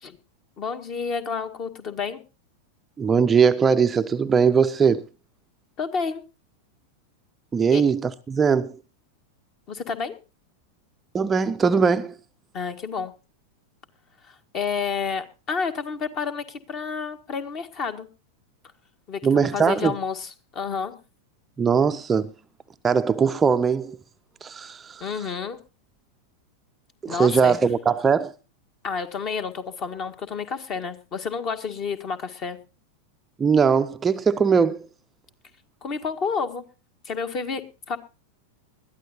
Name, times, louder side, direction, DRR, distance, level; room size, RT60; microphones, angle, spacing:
voice 1, 0.6-2.2 5.8-6.2 7.7-7.8 9.7-10.1 12.5-13.1 14.2-18.1 19.1-21.0 25.0-25.6 27.1-27.5 28.8-32.6 35.8-36.6 37.1-37.6 37.9-38.0, left 5 dB, 35° left, 1.8 m, -30 dB
voice 2, 3.0-5.0 7.5-8.7 11.1-12.1 19.2-19.9 21.6-22.3 22.8-24.0 24.4-25.3 27.0-28.3 33.4-34.9, right 6 dB, 15° right, 0.6 m, -20 dB
21.0 x 13.0 x 2.8 m
figure-of-eight pair, 90°, 0 cm